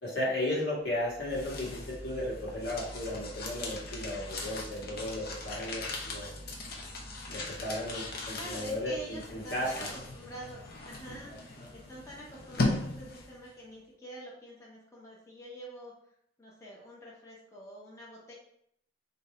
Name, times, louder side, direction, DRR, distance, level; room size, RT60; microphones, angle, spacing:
voice 1, 0.0-6.4 7.3-9.9 11.3-11.8, left 1 dB, 70° left, -5 dB, 1.6 m, -35 dB
sound 1, 0.9-13.5, left 2 dB, 55° left, 0.7 m, -38 dB
voice 2, 8.3-11.3 11.7-15.9 16.4-18.3, right 1 dB, 15° left, -6 dB, 0.9 m, -46 dB
3.7 x 2.8 x 4.2 m, 0.70 s
head